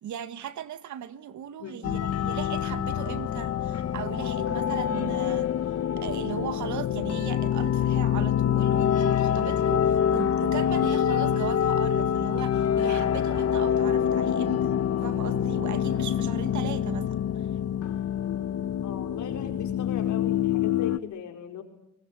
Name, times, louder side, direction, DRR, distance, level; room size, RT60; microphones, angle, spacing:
voice 1, 0.0-5.5 6.0-17.5, right 10 dB, 75° right, 1.7 m, -38 dB
sound 1, 1.8-21.0, left 9 dB, 55° left, 1.0 m, -26 dB
voice 2, 18.8-21.6, left 7 dB, 70° left, 4.5 m, -39 dB
26.5 x 20.0 x 9.7 m
cardioid pair, 90°, 30 cm